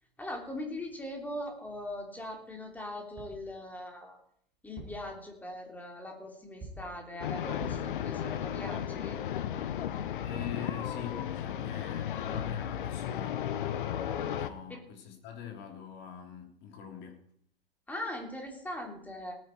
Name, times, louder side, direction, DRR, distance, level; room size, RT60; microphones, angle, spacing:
voice 1, 0.2-4.2 4.6-9.2 14.7-14.8 17.9-19.3, left 1 dB, 5° left, 1 dB, 3.1 m, -40 dB
sound 1, 3.2-3.5 4.6-5.1 6.6-7.0 7.6-8.0 12.0-12.1 12.3-12.7, right 1 dB, 25° right, 5.1 m, -46 dB
sound 2, 7.2-14.5, left 10 dB, 60° left, 1.1 m, -34 dB
voice 2, 10.2-13.4 14.3-17.2, left 7 dB, 35° left, 4 dB, 3.2 m, -44 dB
18.5 x 9.2 x 4.6 m, 0.66 s
figure-of-eight pair, 110°, 30 cm